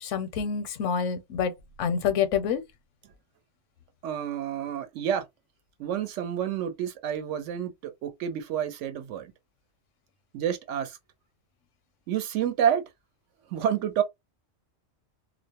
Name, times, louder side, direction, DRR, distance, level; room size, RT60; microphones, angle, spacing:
voice 1, 0.0-1.5 1.8-2.6, left 7 dB, 80° left, 0.9 m, -27 dB
voice 2, 4.0-5.3 5.8-9.3 10.3-11.0 12.1-12.8 13.5-14.0, right 9 dB, 80° right, 0.9 m, -29 dB
2.3 x 2.0 x 2.8 m
omnidirectional pair, 1.3 m